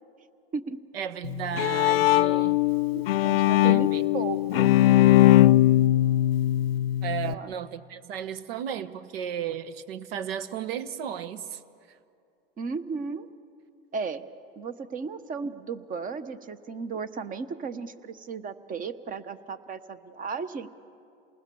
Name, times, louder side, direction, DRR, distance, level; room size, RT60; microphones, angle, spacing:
voice 1, 0.9-2.6 3.6-4.1 7.0-11.6, right 9 dB, 85° right, 14 dB, 1.3 m, -34 dB
Bowed string instrument, 1.2-7.3, left 14 dB, 90° left, 0.6 m, -20 dB
voice 2, 2.9-4.7 7.2-7.6 12.6-13.3 13.9-14.2 14.6-20.7, right 5 dB, 30° right, 14 dB, 1.1 m, -35 dB
28.0 x 20.0 x 7.0 m, 2.5 s
supercardioid pair, 120°, 29 cm